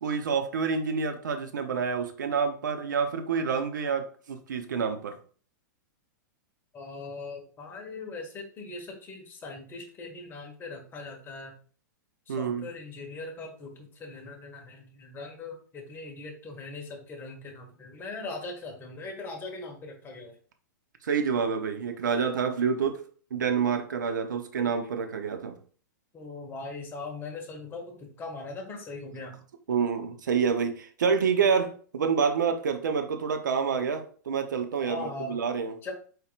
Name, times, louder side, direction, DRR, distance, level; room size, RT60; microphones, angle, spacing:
voice 1, 0.0-5.2 12.3-12.7 21.0-23.0 23.3-25.6 29.7-35.7, right 6 dB, 80° right, 6 dB, 0.8 m, -28 dB
voice 2, 6.7-11.5 12.3-20.4 26.1-29.4 34.9-35.4 35.8-35.9, left 3 dB, 20° left, 1 dB, 1.6 m, -40 dB
4.8 x 4.5 x 2.4 m, 0.43 s
hypercardioid pair, 120°, 10 cm